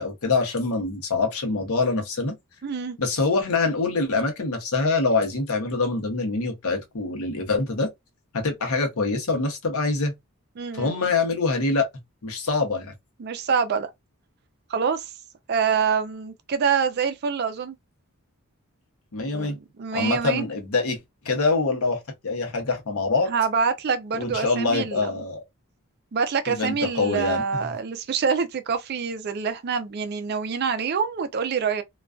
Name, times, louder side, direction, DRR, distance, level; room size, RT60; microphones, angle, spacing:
voice 1, 0.0-2.4 3.0-7.9 8.3-10.1 10.7-11.9 12.2-12.9 19.1-19.6 19.9-21.0 21.2-23.3 24.1-25.4 26.5-27.7, left 3 dB, 70° left, 0.8 m, -25 dB
voice 2, 2.6-3.0 10.6-11.0 13.2-13.9 14.7-15.1 15.5-17.8 19.3-20.4 23.3-25.1 26.1-31.8, right 6 dB, 45° right, 0.4 m, -26 dB
2.4 x 2.3 x 2.3 m
head